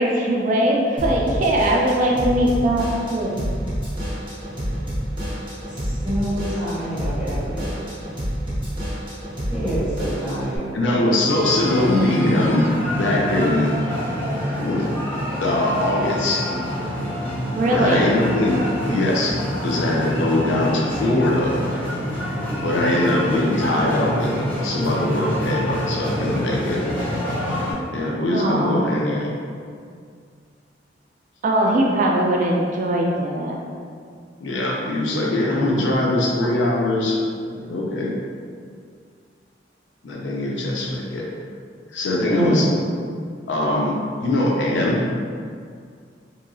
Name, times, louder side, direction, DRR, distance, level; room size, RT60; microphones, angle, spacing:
voice 1, 0.0-3.4 17.5-18.1 28.3-28.9 31.4-33.5, right 1 dB, 45° right, -1 dB, 0.3 m, -20 dB
Drum kit / Drum, 1.0-10.6, equal, 30° right, 0.9 m, -28 dB
voice 2, 5.8-7.8 9.5-10.7 42.3-42.7, equal, 10° right, -12 dB, 1.1 m, -26 dB
voice 3, 10.7-13.8 14.6-14.9 15.1-16.5 17.7-21.5 22.6-26.8 27.9-29.3 34.4-37.2 37.5-38.1 40.0-41.3 41.9-42.7 43.5-45.0, left 1 dB, 85° left, -2 dB, 0.5 m, -22 dB
sound 1, 11.3-27.7, equal, 10° left, 0.8 m, -27 dB
2.9 x 2.7 x 2.6 m, 2.2 s
head